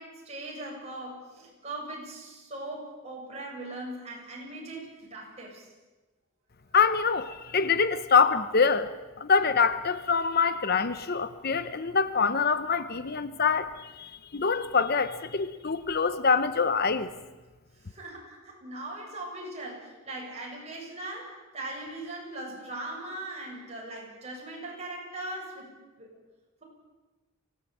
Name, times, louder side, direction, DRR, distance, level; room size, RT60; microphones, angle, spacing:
voice 1, 0.0-5.7 17.8-25.7 26.0-26.1, right 2 dB, 30° right, -2 dB, 7.8 m, -40 dB
voice 2, 6.7-8.9 9.2-17.1, left 5 dB, 45° left, 12 dB, 0.8 m, -25 dB
24.5 x 17.5 x 8.5 m, 1.2 s
head